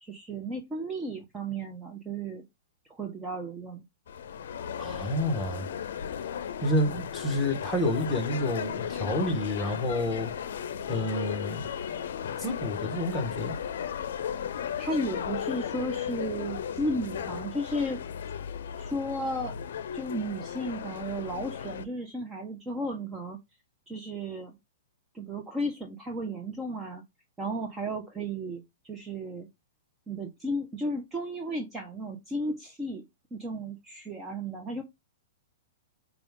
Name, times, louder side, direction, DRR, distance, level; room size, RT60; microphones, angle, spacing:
voice 1, 0.0-2.4 2.9-3.8 14.8-18.0 18.8-19.6 19.9-23.4 23.9-24.6 25.1-27.0 27.4-29.5 30.1-33.0 33.3-34.8, right 1 dB, 15° right, 0.8 m, -34 dB
sound 1, 4.1-21.8, left 8 dB, 70° left, 0.5 m, -35 dB
voice 2, 4.8-5.7 6.6-10.3 10.9-11.7 12.4-13.6, left 1 dB, 5° left, 1.3 m, -29 dB
5.0 x 2.4 x 3.6 m
hypercardioid pair, 140°, 0 cm